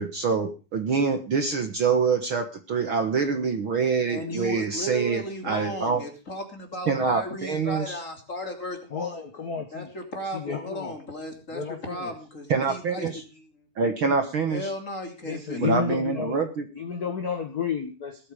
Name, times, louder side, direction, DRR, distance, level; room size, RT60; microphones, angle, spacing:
voice 1, 0.0-6.0 6.9-7.9 12.5-13.2 13.8-14.7 15.6-16.7, right 5 dB, 50° right, 7 dB, 1.8 m, -25 dB
voice 2, 4.1-9.3 9.7-13.6 14.5-15.7, equal, 25° left, 4 dB, 3.2 m, -35 dB
voice 3, 8.9-9.8 10.4-10.9 11.5-11.8 15.3-16.4 16.8-18.2, left 6 dB, 40° left, 6 dB, 1.4 m, -31 dB
19.5 x 8.8 x 5.0 m, 0.33 s
omnidirectional pair, 3.5 m